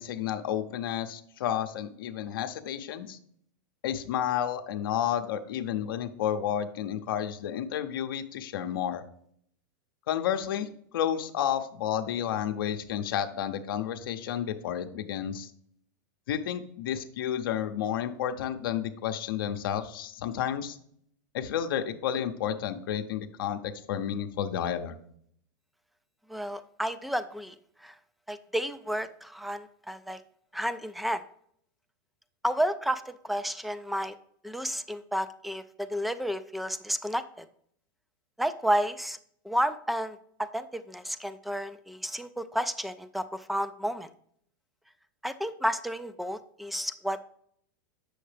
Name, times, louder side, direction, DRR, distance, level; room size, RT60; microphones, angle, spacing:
voice 1, 0.0-3.2 3.8-9.0 10.1-15.5 16.3-20.8 21.3-25.0, left 9 dB, 75° left, 6 dB, 0.7 m, -31 dB
voice 2, 26.3-27.6 27.8-27.9 28.3-30.2 30.5-31.2 32.4-34.2 34.4-37.5 38.4-39.2 39.4-44.1 45.2-47.2, equal, ahead, 13 dB, 0.3 m, -31 dB
7.8 x 6.4 x 3.3 m, 0.65 s
supercardioid pair, 135°, 12 cm